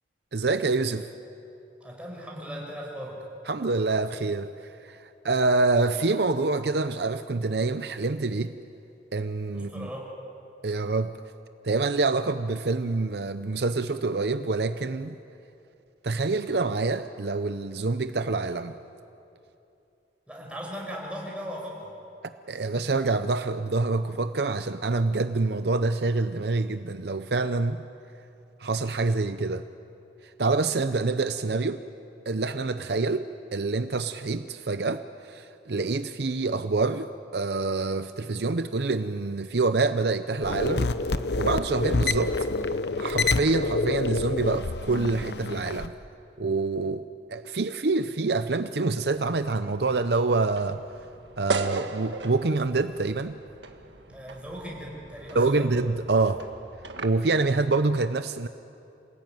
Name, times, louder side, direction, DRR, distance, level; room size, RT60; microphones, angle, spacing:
voice 1, 0.3-1.1 3.5-8.5 9.1-9.9 10.6-11.1 11.6-15.2 16.0-18.8 22.5-27.8 28.6-29.6 30.4-31.8 32.3-40.9 41.4-42.5 43.0-45.9 46.4-50.8 51.4-53.4 55.3-56.4 57.0-58.5, right 3 dB, 60° right, 10 dB, 0.7 m, -26 dB
voice 2, 1.8-3.2 9.5-10.1 20.3-21.9 54.1-55.7, equal, 5° right, -2 dB, 5.6 m, -38 dB
sound 1, 40.4-45.9, left 3 dB, 65° left, 0.9 m, -27 dB
sound 2, 49.1-57.1, right 4 dB, 80° right, 1.6 m, -38 dB
27.0 x 19.0 x 9.3 m, 2.7 s
head